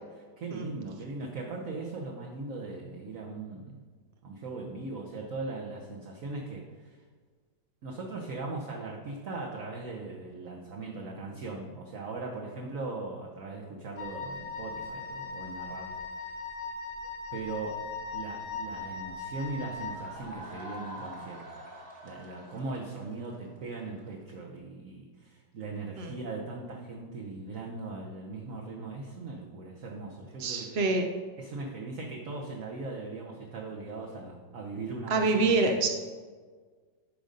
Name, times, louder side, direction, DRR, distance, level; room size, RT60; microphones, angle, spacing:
voice 1, 0.4-3.8 4.2-7.0 7.8-16.3 17.3-17.8 18.1-21.5 22.0-30.7 31.4-35.9, right 3 dB, 55° right, -1 dB, 1.2 m, -39 dB
Wind instrument woodwind instrument, 14.0-20.1, left 4 dB, 50° left, 1.3 m, -39 dB
sound 1, 19.6-24.3, right 1 dB, 40° right, 1.5 m, -46 dB
voice 2, 30.4-31.0 35.1-35.9, right 3 dB, 75° right, 3 dB, 0.5 m, -26 dB
11.5 x 3.9 x 5.2 m, 1.5 s
omnidirectional pair, 1.9 m